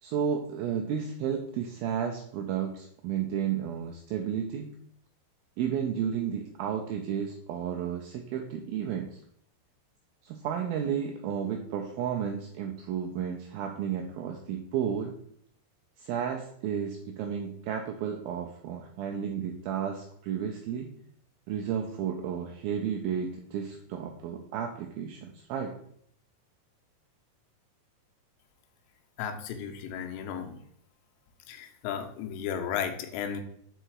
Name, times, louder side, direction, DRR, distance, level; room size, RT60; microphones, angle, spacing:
voice 1, 0.0-4.8 5.6-9.2 10.2-15.2 16.0-20.9 21.5-25.7, right 8 dB, 90° right, 2 dB, 2.1 m, -32 dB
voice 2, 29.2-30.6 31.5-33.4, left 8 dB, 90° left, 5 dB, 3.0 m, -34 dB
5.6 x 5.0 x 4.5 m, 0.67 s
omnidirectional pair, 4.8 m